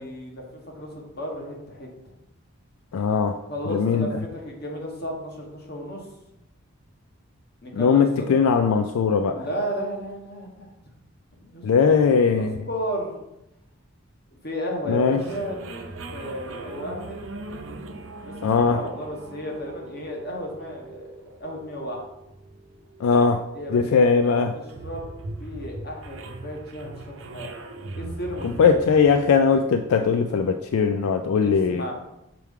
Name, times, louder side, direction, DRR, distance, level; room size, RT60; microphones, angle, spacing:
voice 1, 0.0-1.9 3.5-6.0 7.6-8.3 9.3-10.7 11.4-13.1 14.4-15.6 16.1-17.2 18.2-21.1 21.4-22.0 23.5-24.4 24.8-25.1 25.4-27.5 28.0-28.8 31.4-31.9, equal, 45° left, 0 dB, 1.2 m, -34 dB
voice 2, 2.9-3.4 3.7-4.2 7.7-9.5 11.6-12.6 14.9-15.2 18.4-18.8 23.0-23.4 23.7-24.5 28.4-31.8, left 5 dB, 75° left, 7 dB, 0.3 m, -20 dB
sound 1, 15.2-30.6, right 2 dB, 60° right, 0.6 m, -40 dB
5.9 x 4.6 x 3.6 m, 0.90 s
head